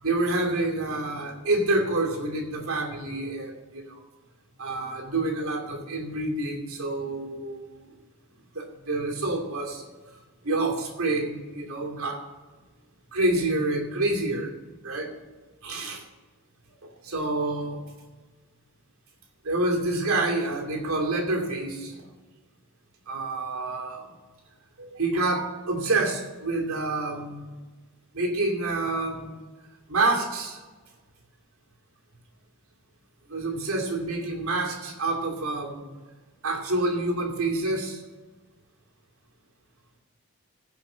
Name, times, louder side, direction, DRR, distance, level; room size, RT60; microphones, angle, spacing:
voice 1, 0.0-4.0 4.6-7.8 8.5-9.8 10.4-12.2 13.1-14.5 14.8-15.1 15.6-16.0 16.8-17.8 19.4-22.1 23.1-24.1 24.8-27.5 28.1-29.3 29.9-30.6 33.3-35.9 36.4-38.0, right 2 dB, 75° right, 2 dB, 2.6 m, -28 dB
16.0 x 5.8 x 6.3 m, 1.3 s
head